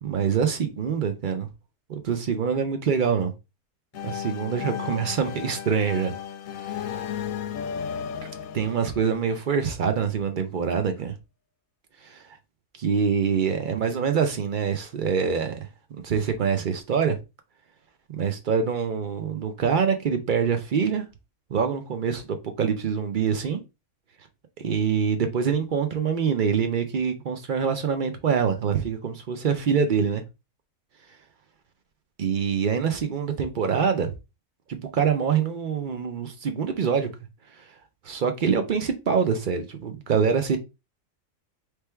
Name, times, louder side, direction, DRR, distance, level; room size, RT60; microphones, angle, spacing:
voice 1, 0.0-1.5 1.9-3.3 4.0-6.1 6.6-7.0 8.5-11.1 12.0-12.2 12.8-15.7 16.0-17.2 18.1-21.0 21.5-23.6 24.6-30.2 32.2-34.1 34.7-37.1 38.0-40.6, right 6 dB, 70° right, 0.4 m, -25 dB
sound 1, 3.9-9.7, left 8 dB, 70° left, 0.9 m, -34 dB
3.4 x 3.1 x 4.3 m
omnidirectional pair, 1.6 m